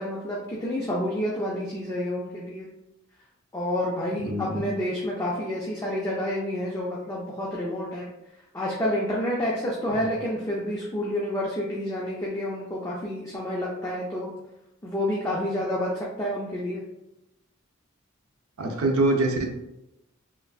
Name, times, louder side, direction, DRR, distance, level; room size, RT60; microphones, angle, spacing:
voice 1, 0.0-2.7 3.5-8.1 8.5-14.3 14.8-16.8, left 1 dB, 15° left, -5 dB, 0.3 m, -29 dB
voice 2, 4.2-4.7 18.6-19.5, right 2 dB, 85° right, 2 dB, 0.6 m, -24 dB
3.2 x 2.5 x 2.3 m, 0.90 s
head